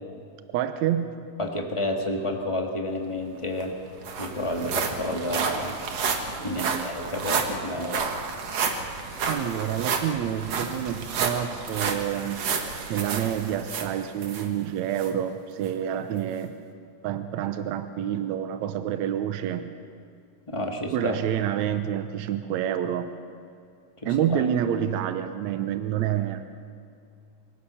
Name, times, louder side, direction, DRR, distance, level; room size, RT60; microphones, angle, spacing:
voice 1, 0.5-1.3 6.4-6.9 9.3-12.4 12.9-16.5 17.0-19.7 20.9-23.1 24.1-26.5, right 10 dB, 80° right, 9 dB, 2.1 m, -28 dB
voice 2, 1.4-3.8 4.2-5.7 6.4-8.1 20.5-21.2 24.0-24.4, left 1 dB, 15° left, 1 dB, 1.5 m, -30 dB
sound 1, 3.3-3.4 3.6-14.5 15.0-15.1 15.7-15.8, right 5 dB, 60° right, 2.5 m, -30 dB
23.5 x 17.0 x 7.0 m, 2.5 s
omnidirectional pair, 3.4 m